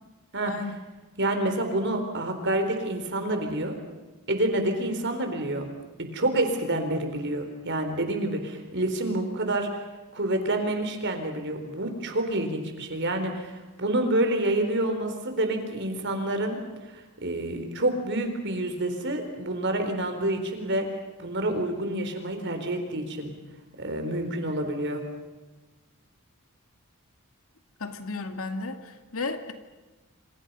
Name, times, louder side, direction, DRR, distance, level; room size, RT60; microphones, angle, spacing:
voice 1, 0.5-0.8 27.8-29.5, left 3 dB, 70° left, 7 dB, 2.3 m, -34 dB
voice 2, 1.2-3.8 4.3-5.7 6.0-9.8 10.1-16.6 17.2-20.9 21.2-23.3 23.8-25.0, right 1 dB, 55° right, 5 dB, 4.1 m, -28 dB
28.0 x 27.0 x 5.6 m, 1.2 s
head